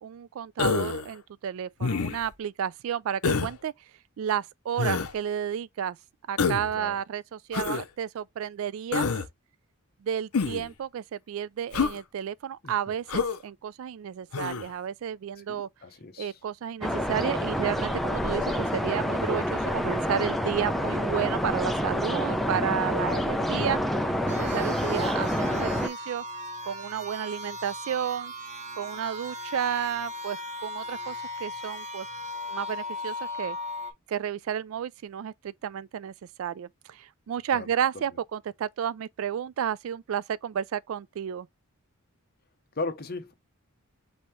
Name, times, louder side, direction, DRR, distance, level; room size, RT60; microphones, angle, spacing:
voice 1, 0.0-3.7 4.2-6.0 6.3-9.1 10.0-15.7 16.2-23.8 24.3-26.2 26.6-28.3 28.8-32.1 32.5-33.6 34.1-41.5, right 8 dB, 70° right, 0.3 m, -32 dB
Human voice, 0.6-1.1 1.8-2.3 3.2-3.5 4.8-5.1 6.4-6.7 7.5-7.8 8.9-9.3 10.3-10.7 11.7-12.0 13.1-13.4 14.3-14.7, left 5 dB, 90° left, 0.7 m, -27 dB
voice 2, 15.5-16.3 37.5-37.7 37.9-38.0 42.8-43.3, left 3 dB, 45° left, 0.9 m, -36 dB
sound 1, 16.8-25.9, equal, ahead, 0.5 m, -28 dB
sound 2, 24.3-33.9, left 1 dB, 30° right, 1.0 m, -37 dB
5.3 x 2.8 x 3.1 m
head